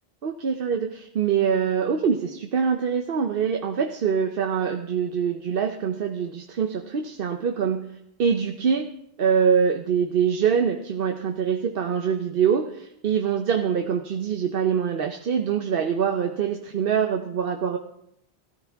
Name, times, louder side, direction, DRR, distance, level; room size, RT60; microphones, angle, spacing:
voice 1, 0.2-7.9 8.2-8.9 9.2-17.8, right 7 dB, 60° right, 4 dB, 0.9 m, -24 dB
14.5 x 13.0 x 3.5 m, 0.77 s
omnidirectional pair, 1.1 m